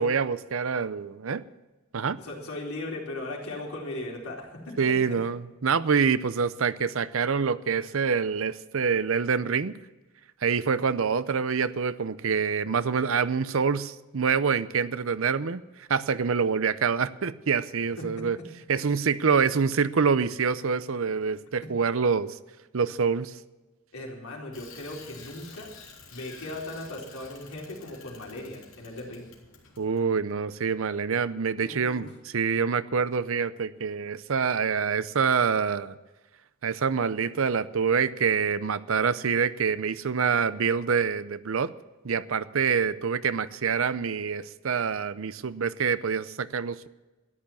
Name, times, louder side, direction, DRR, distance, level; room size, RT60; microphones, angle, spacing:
voice 1, 0.0-1.4 1.9-2.2 4.8-9.8 10.4-18.4 18.7-22.4 22.7-23.4 29.8-36.0 36.6-41.7 42.0-46.9, right 6 dB, 65° right, 15 dB, 0.6 m, -26 dB
voice 2, 2.2-4.9 18.0-18.2 23.9-25.7 26.1-29.3 31.6-32.0, left 2 dB, 80° left, -2 dB, 4.0 m, -38 dB
Bicycle, 24.5-30.0, left 5 dB, 60° left, 3.6 m, -50 dB
13.5 x 10.5 x 7.1 m, 1.1 s
head